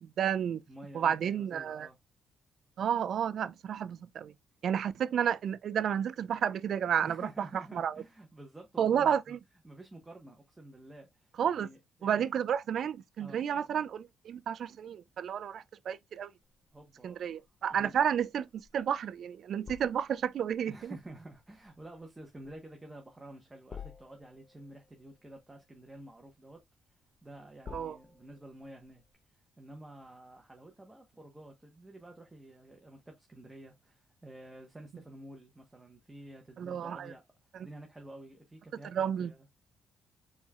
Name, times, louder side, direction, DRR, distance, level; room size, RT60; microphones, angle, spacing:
voice 1, 0.0-0.6 0.9-1.9 2.8-4.3 4.6-7.3 7.7-7.9 8.8-9.4 11.4-11.7 12.0-16.3 17.0-18.5 18.7-21.0 27.7-28.0 36.6-37.1 38.9-39.3, right 8 dB, 65° right, 0.4 m, -31 dB
voice 2, 0.7-2.0 7.0-9.4 9.6-12.3 13.2-13.4 16.7-17.4 17.7-18.0 20.7-26.6 27.2-29.0 29.3-37.2 37.6-39.6, right 1 dB, 15° right, 1.1 m, -50 dB
sound 1, 16.4-29.1, left 6 dB, 40° left, 0.6 m, -53 dB
4.5 x 4.2 x 2.4 m
cardioid pair, 90°, 0 cm